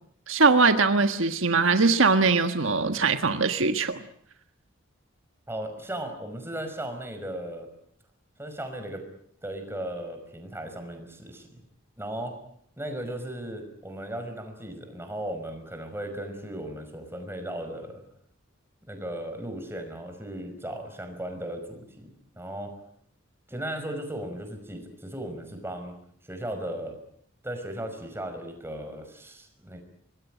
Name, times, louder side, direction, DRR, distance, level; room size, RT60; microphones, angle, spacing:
voice 1, 0.3-4.0, right 4 dB, 70° right, 8 dB, 1.5 m, -21 dB
voice 2, 5.5-7.7 8.4-9.0 9.4-11.6 12.0-12.4 12.8-18.0 18.9-22.7 23.5-26.0 26.3-27.0 27.4-29.8, right 1 dB, 10° right, 6 dB, 5.5 m, -36 dB
25.5 x 21.0 x 9.1 m, 0.68 s
head